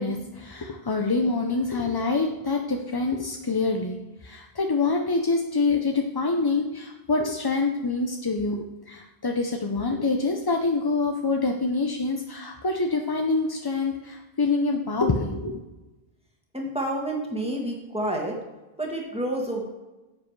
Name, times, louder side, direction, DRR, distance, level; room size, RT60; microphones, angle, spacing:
voice 1, 0.0-15.6, left 3 dB, 30° left, 3 dB, 0.5 m, -26 dB
voice 2, 16.5-18.4 18.8-19.6, right 1 dB, 5° right, -1 dB, 1.8 m, -29 dB
10.0 x 7.5 x 3.1 m, 1.1 s
omnidirectional pair, 1.1 m